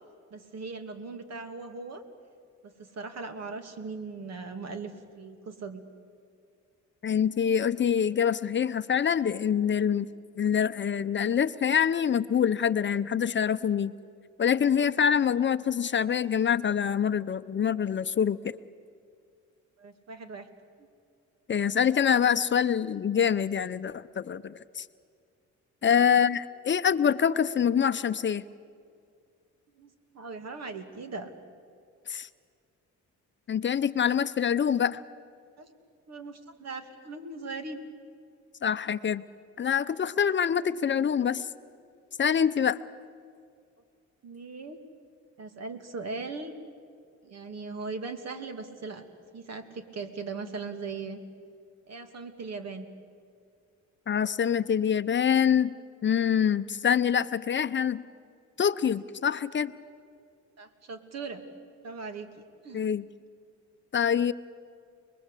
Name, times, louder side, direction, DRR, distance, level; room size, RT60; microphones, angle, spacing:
voice 1, 0.3-2.0 2.6-5.8 19.8-20.5 25.8-26.1 29.7-31.3 35.6-35.7 36.1-37.8 44.2-44.8 45.4-46.5 47.2-49.0 49.3-51.2 51.9-52.9 60.6-61.4 61.8-62.3 62.6-62.8, right 4 dB, 60° right, 8 dB, 2.6 m, -39 dB
voice 2, 7.0-10.1 10.4-13.9 14.4-18.4 21.5-24.9 25.8-28.4 32.1-32.3 33.5-35.0 38.6-39.2 39.6-41.5 42.2-42.8 54.1-55.7 56.0-58.0 58.6-59.7 62.7-63.0 63.9-64.3, left 8 dB, 40° left, 12 dB, 0.7 m, -25 dB
30.0 x 21.5 x 8.4 m, 2.3 s
cardioid pair, 90°, 30 cm